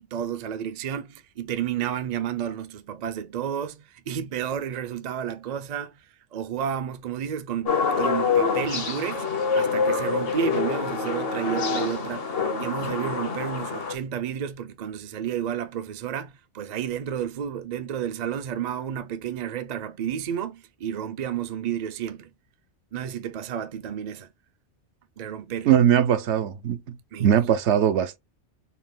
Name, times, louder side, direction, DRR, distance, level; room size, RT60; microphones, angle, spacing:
voice 1, 0.0-6.0 6.3-9.3 9.5-22.3 22.9-24.3 25.2-25.7 27.1-27.4, right 9 dB, 50° right, 0.6 m, -31 dB
sound 1, 7.7-13.9, left 5 dB, 55° left, 1.1 m, -26 dB
voice 2, 25.7-28.2, right 9 dB, 75° right, 0.9 m, -21 dB
4.3 x 2.3 x 3.6 m
omnidirectional pair, 1.2 m